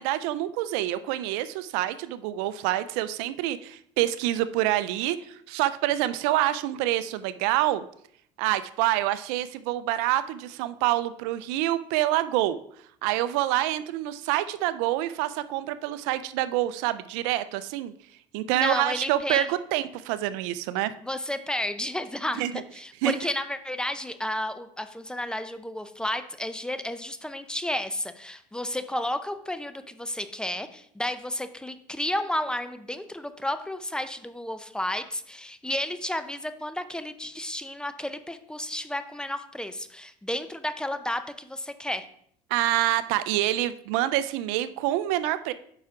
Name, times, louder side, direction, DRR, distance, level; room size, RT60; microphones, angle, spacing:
voice 1, 0.0-7.8 8.4-12.6 13.0-17.9 18.3-20.9 22.4-22.5 23.0-23.1 42.5-45.5, right 14 dB, 85° right, 14 dB, 0.5 m, -27 dB
voice 2, 18.5-19.5 21.0-22.4 22.7-42.1, left 1 dB, 5° left, 10 dB, 0.6 m, -32 dB
9.0 x 5.8 x 3.7 m, 0.66 s
supercardioid pair, 100°, 15 cm